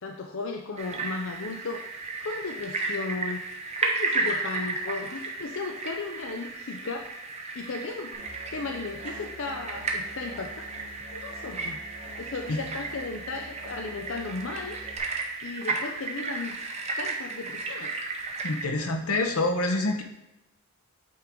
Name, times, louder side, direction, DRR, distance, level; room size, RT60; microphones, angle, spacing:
voice 1, 0.0-1.8 2.2-3.4 3.8-7.2 7.5-8.2 8.5-10.6 11.1-11.8 12.2-14.8 15.4-16.6 17.0-17.9, left 3 dB, 60° left, 3 dB, 0.5 m, -35 dB
sound 1, 0.8-18.7, right 3 dB, 30° right, 0.7 m, -34 dB
Musical instrument, 8.1-15.0, right 1 dB, 55° right, 2.1 m, -47 dB
voice 2, 18.4-20.0, left 2 dB, 85° left, 4 dB, 0.9 m, -26 dB
8.5 x 3.8 x 4.4 m, 0.93 s
head